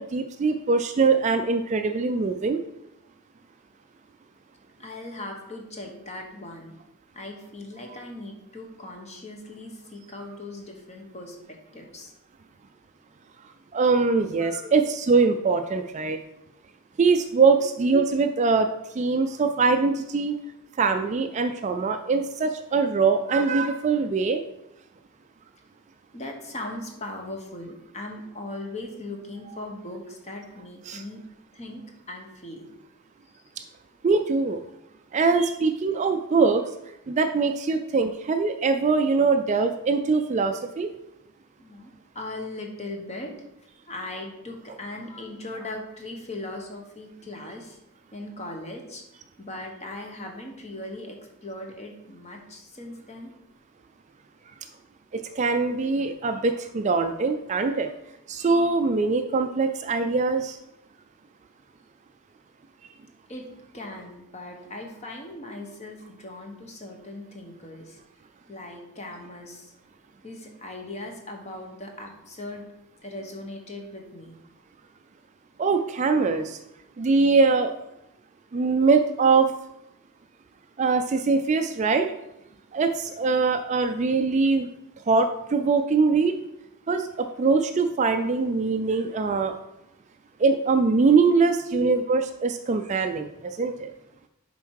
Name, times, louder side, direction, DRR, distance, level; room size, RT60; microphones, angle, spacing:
voice 1, 0.0-2.6 13.7-16.2 17.0-20.4 20.8-24.4 30.9-31.0 34.0-34.6 35.1-36.6 37.1-40.9 55.1-57.9 58.3-60.6 62.8-62.9 75.6-76.6 77.0-77.7 78.5-79.5 80.8-82.1 82.7-84.7 85.1-86.4 86.9-89.5 90.4-93.9, right 4 dB, 30° right, 7 dB, 0.3 m, -22 dB
voice 2, 4.8-6.7 7.1-11.4 11.7-12.1 14.4-14.8 17.6-17.7 26.1-31.2 31.5-31.8 32.1-32.7 33.3-33.4 41.6-43.3 43.6-47.8 48.1-49.0 49.4-51.2 51.4-53.3 63.3-63.4 63.7-68.0 68.5-69.8 70.2-72.7 73.0-74.4 91.7-91.9, left 1 dB, 30° left, 2 dB, 1.1 m, -39 dB
6.9 x 4.4 x 4.6 m, 0.86 s
head